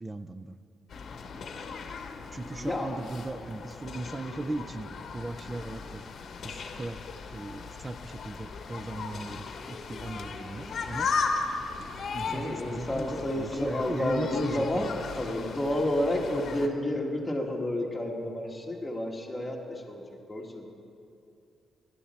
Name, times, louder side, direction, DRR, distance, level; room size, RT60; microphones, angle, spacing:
voice 1, 0.0-0.6 2.3-6.0 6.4-7.0 7.3-11.1 11.8-15.0, right 2 dB, 20° right, 13 dB, 0.4 m, -38 dB
sound 1, 0.9-16.7, left 4 dB, 55° left, 1.0 m, -37 dB
voice 2, 2.6-3.0 12.3-20.0 20.3-20.7, left 1 dB, 10° left, 0 dB, 1.6 m, -30 dB
16.0 x 11.5 x 4.3 m, 2.6 s
cardioid pair, 120°, 0 cm